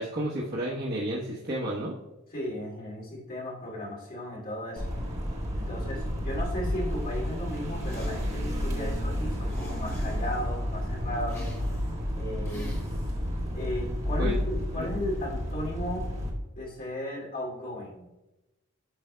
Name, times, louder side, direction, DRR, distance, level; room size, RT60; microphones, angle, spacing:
voice 1, 0.0-1.9 14.2-14.4 14.8-14.9, right 1 dB, 50° right, -6 dB, 1.1 m, -31 dB
voice 2, 2.3-4.8 5.5-11.5 12.1-12.8 13.5-16.1 16.5-18.0, left 1 dB, 45° left, -4 dB, 2.6 m, -35 dB
sound 1, 4.8-16.3, equal, 30° right, 1.4 m, -31 dB
sound 2, 7.8-8.6 9.5-10.5 11.3-12.0 12.5-13.2, equal, 15° left, 1.6 m, -45 dB
9.4 x 6.2 x 2.2 m, 0.98 s
head